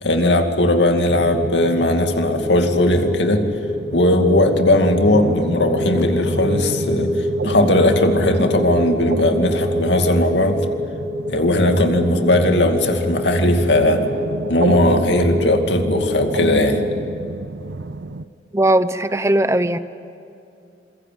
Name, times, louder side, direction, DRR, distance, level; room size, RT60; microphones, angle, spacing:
voice 1, 0.0-3.4 3.9-10.6 11.3-14.0 14.5-16.8, left 1 dB, 80° left, 5 dB, 2.4 m, -18 dB
sound 1, 1.1-17.0, left 1 dB, ahead, 2.3 m, -27 dB
sound 2, 1.1-18.3, right 3 dB, 75° right, 0.7 m, -30 dB
voice 2, 18.5-19.8, right 1 dB, 15° right, 13 dB, 0.7 m, -18 dB
27.0 x 22.5 x 9.4 m, 2.6 s
head